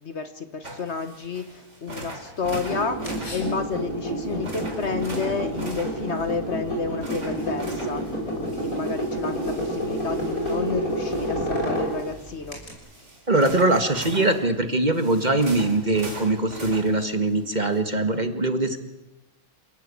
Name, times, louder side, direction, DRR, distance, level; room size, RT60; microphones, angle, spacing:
voice 1, 0.0-12.6, left 5 dB, 50° left, 10 dB, 1.5 m, -31 dB
sound 1, 0.6-17.8, right 1 dB, 55° right, 4.1 m, -42 dB
sound 2, 2.4-12.7, right 1 dB, 70° left, 6.9 m, -29 dB
voice 2, 13.3-18.8, right 2 dB, 30° right, 8 dB, 1.9 m, -22 dB
28.0 x 18.0 x 8.6 m, 0.97 s
omnidirectional pair, 1.5 m